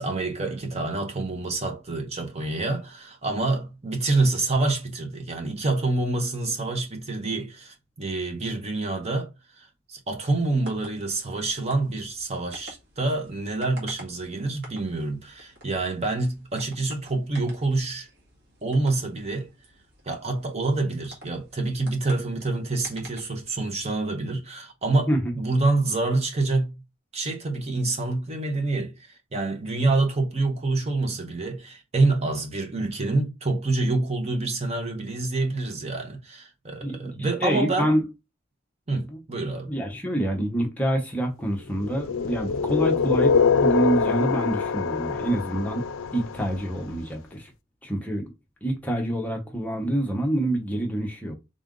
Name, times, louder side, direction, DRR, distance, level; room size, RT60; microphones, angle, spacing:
voice 1, 0.0-18.1 18.6-19.5 20.1-25.1 25.3-26.7 27.1-37.9 38.9-39.7, right 2 dB, 30° right, 0.8 m, -27 dB
sound 1, 10.3-23.9, right 1 dB, 55° right, 1.7 m, -50 dB
voice 2, 36.8-37.1 37.4-38.0 39.1-39.2 39.7-43.4 43.6-45.8 46.1-47.5 47.8-48.3 48.6-51.3, right 1 dB, 10° left, 0.8 m, -26 dB
sound 2, 41.8-46.8, left 5 dB, 80° left, 0.4 m, -24 dB
3.7 x 2.5 x 3.6 m
head